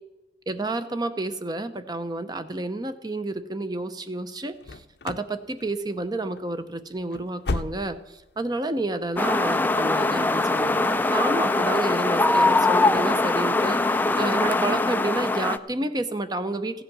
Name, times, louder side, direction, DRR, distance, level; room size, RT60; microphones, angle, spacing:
voice 1, 0.5-16.8, right 2 dB, 25° right, 11 dB, 0.7 m, -30 dB
sound 1, 4.6-5.3 5.6-6.1 6.4-6.5 6.9-8.2 8.5-8.6 9.1-9.2, left 3 dB, 70° left, 0.6 m, -33 dB
sound 2, 9.2-15.6, left 2 dB, 10° left, 0.3 m, -22 dB
15.5 x 8.2 x 6.1 m, 0.98 s
head